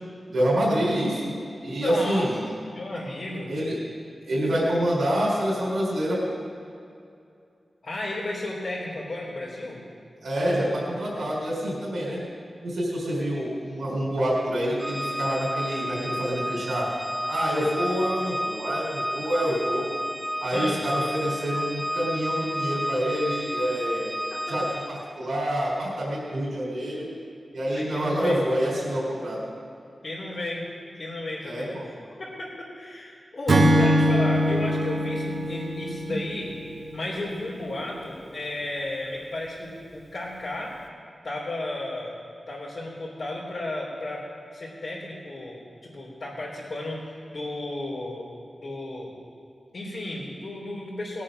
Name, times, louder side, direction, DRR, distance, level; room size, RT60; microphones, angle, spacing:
voice 1, 0.3-1.3 1.6-2.4 3.5-3.8 4.3-6.2 10.2-12.2 12.6-16.9 17.3-19.9 20.4-24.2 24.5-27.1 27.5-29.4 31.4-31.9 36.1-36.2, equal, 85° right, -5 dB, 4.0 m, -27 dB
voice 2, 1.8-2.3 2.7-3.5 7.8-9.8 20.5-20.8 24.3-24.5 27.7-28.4 30.0-30.6 31.0-31.7 32.0-36.5 36.9-40.7 41.2-42.2 42.5-44.2 44.5-47.0 47.3-48.3 48.6-49.1 49.7-51.2, left 2 dB, 60° left, -8 dB, 3.3 m, -33 dB
Organ, 14.8-25.2, equal, 5° right, 0.4 m, -31 dB
Acoustic guitar / Strum, 33.5-36.9, equal, 60° right, 1.3 m, -22 dB
19.0 x 8.5 x 6.4 m, 2.5 s
wide cardioid pair, 100°, 0 cm